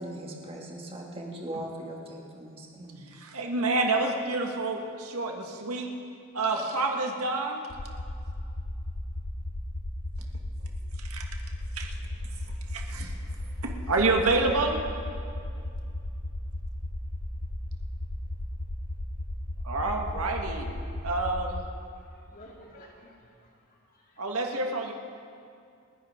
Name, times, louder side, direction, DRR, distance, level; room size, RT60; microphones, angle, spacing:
voice 1, 0.0-3.1, right 1 dB, 25° right, -1 dB, 2.2 m, -39 dB
voice 2, 3.1-5.9 6.3-7.6 11.0-11.2 11.7-11.9 12.7-13.1 13.6-14.8 19.6-20.7 21.0-21.6 24.2-24.9, right 3 dB, 90° right, 2 dB, 1.7 m, -28 dB
sound 1, 7.7-21.7, left 1 dB, 85° left, 0.9 m, -35 dB
voice 3, 22.0-23.1 23.9-24.3, equal, 40° left, -2 dB, 2.3 m, -52 dB
29.5 x 10.5 x 3.7 m, 2.4 s
head